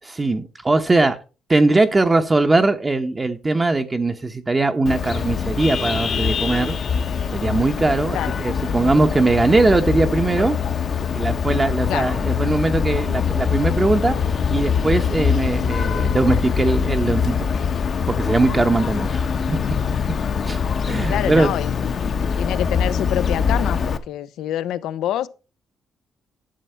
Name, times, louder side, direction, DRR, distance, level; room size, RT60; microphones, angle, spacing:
voice 1, 0.0-1.2 1.5-6.8 7.3-10.6 11.1-14.2 14.5-17.4 18.1-19.6 20.5-20.6 20.9-21.5, right 2 dB, 25° right, 0.9 m, -20 dB
Vehicle horn car horn honking, 4.9-24.0, left 6 dB, 50° left, 1.0 m, -23 dB
voice 2, 21.1-25.3, left 11 dB, 85° left, 0.7 m, -27 dB
11.5 x 6.2 x 4.4 m
cardioid pair, 90°, 0 cm